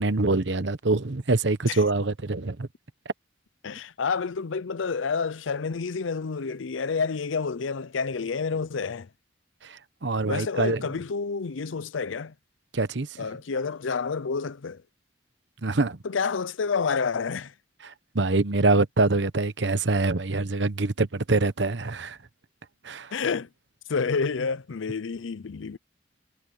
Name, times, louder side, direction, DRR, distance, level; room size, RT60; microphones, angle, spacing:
voice 1, 0.0-2.7 9.6-10.8 12.7-13.3 15.6-16.0 17.8-22.2 22.8-23.1, right 3 dB, 65° right, 1.1 m, -25 dB
voice 2, 3.6-9.1 10.3-12.3 13.2-14.8 16.0-17.5 23.1-23.5 23.9-25.8, left 5 dB, 85° left, 0.6 m, -29 dB
head